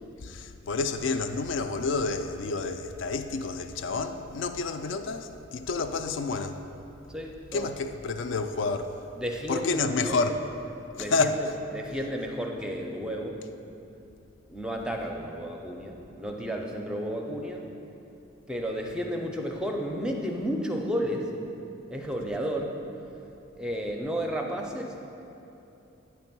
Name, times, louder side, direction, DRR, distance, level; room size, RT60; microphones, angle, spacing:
voice 1, 0.2-6.6 7.5-8.9 9.5-10.4 11.0-11.4, left 4 dB, 65° left, 0.3 m, -29 dB
voice 2, 7.1-7.7 9.2-10.2 11.0-13.4 14.5-17.6 18.5-21.3 21.9-22.8 23.6-25.0, equal, 5° right, 0.5 m, -32 dB
8.7 x 3.4 x 5.9 m
head